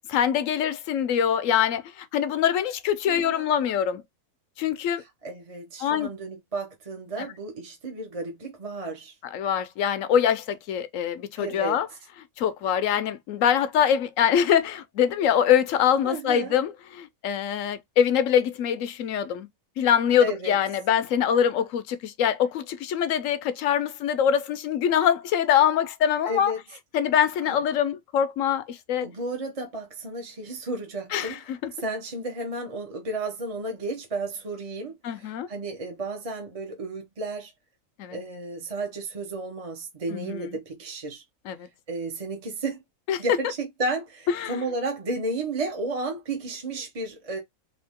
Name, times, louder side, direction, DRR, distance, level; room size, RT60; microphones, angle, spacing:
voice 1, 0.1-4.0 4.6-5.0 5.8-6.1 7.2-7.3 9.3-11.9 12.4-19.5 19.8-26.5 26.9-29.1 31.1-31.7 35.0-35.5 38.0-38.2 40.1-40.6 41.4-41.7 43.1-43.2 44.4-44.6, left 9 dB, 65° left, 0.9 m, -24 dB
voice 2, 3.1-3.4 5.2-9.1 11.4-11.8 16.0-16.5 20.2-20.5 26.3-26.6 27.4-27.6 29.0-31.4 31.8-37.5 38.1-41.2 41.9-42.8 43.2-47.4, right 2 dB, 30° right, 0.8 m, -33 dB
3.6 x 3.1 x 3.5 m
omnidirectional pair, 1.6 m